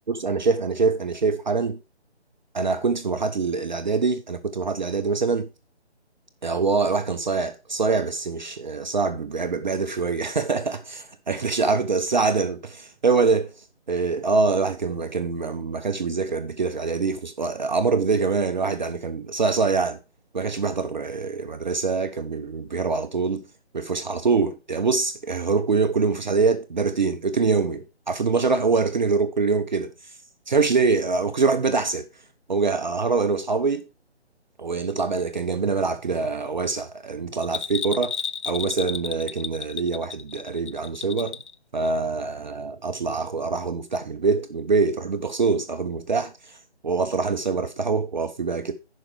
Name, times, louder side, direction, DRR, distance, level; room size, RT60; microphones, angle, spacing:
voice 1, 0.1-1.8 2.5-5.5 6.4-13.5 13.9-20.0 20.3-23.4 23.7-30.1 30.5-32.1 32.5-33.8 34.6-38.1 38.4-41.4 41.7-46.6 46.8-48.7, right 4 dB, 45° right, 0.7 m, -24 dB
Bell, 37.4-41.5 41.8-41.9, left 6 dB, 85° left, 0.7 m, -32 dB
10.5 x 5.1 x 4.9 m
figure-of-eight pair, 160°, 34 cm